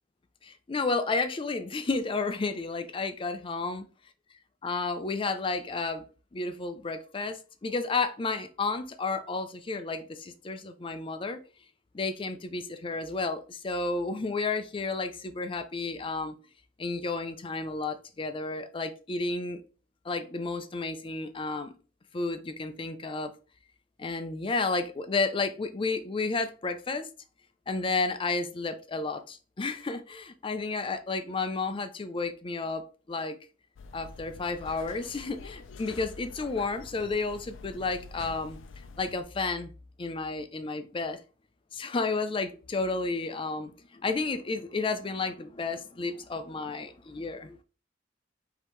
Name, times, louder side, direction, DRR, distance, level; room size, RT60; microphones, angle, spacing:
voice 1, 0.4-3.8 4.6-6.0 6.3-11.4 11.9-16.4 16.8-19.6 20.0-21.7 22.1-23.3 24.0-27.1 27.7-32.8 33.1-33.4 33.9-38.6 39.0-39.7 40.0-41.2 41.7-47.6, left 3 dB, 30° left, 0.4 m, -32 dB
sound 1, 33.8-39.2, left 4 dB, 85° left, 0.4 m, -46 dB
5.1 x 2.9 x 3.1 m
head